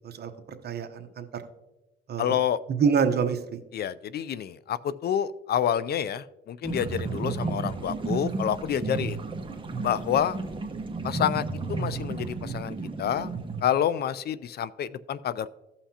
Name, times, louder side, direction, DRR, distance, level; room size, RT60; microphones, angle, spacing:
voice 1, 0.6-1.4 2.1-2.4 2.7-3.6, right 6 dB, 55° right, 7 dB, 1.0 m, -26 dB
voice 2, 2.2-2.6 3.7-9.2 9.8-10.4 11.0-13.3 13.6-15.5, left 9 dB, 55° left, 16 dB, 0.4 m, -28 dB
sound 1, 6.6-13.6, right 3 dB, 25° right, 1.1 m, -32 dB
15.5 x 5.7 x 2.8 m, 1.0 s
cardioid pair, 90°, 20 cm